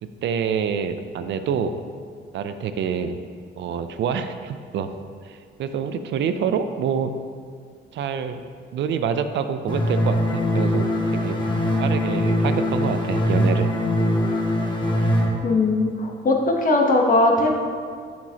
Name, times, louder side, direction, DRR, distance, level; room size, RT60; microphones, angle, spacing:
voice 1, 0.0-1.8 2.3-3.2 3.6-4.9 5.2-7.1 7.9-8.4 8.7-11.4 11.8-13.7, right 7 dB, 65° right, 9 dB, 0.4 m, -26 dB
sound 1, 9.7-15.3, left 1 dB, 25° left, 1.2 m, -22 dB
voice 2, 15.4-17.5, left 2 dB, 45° left, 1 dB, 1.0 m, -19 dB
7.2 x 5.9 x 2.8 m, 2.1 s
cardioid pair, 90°, 20 cm